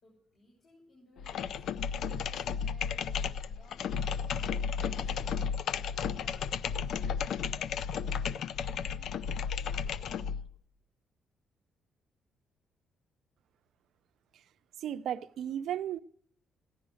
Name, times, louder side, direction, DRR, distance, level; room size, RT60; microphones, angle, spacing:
voice 1, 0.0-5.6 5.9-8.3 8.8-10.2, left 1 dB, 55° left, 6.4 m, -61 dB
sound 1, 1.2-10.5, left 7 dB, 70° left, 0.5 m, -33 dB
voice 2, 14.8-16.0, right 10 dB, 75° right, 0.6 m, -34 dB
14.5 x 11.0 x 6.4 m
cardioid pair, 90°, 0 cm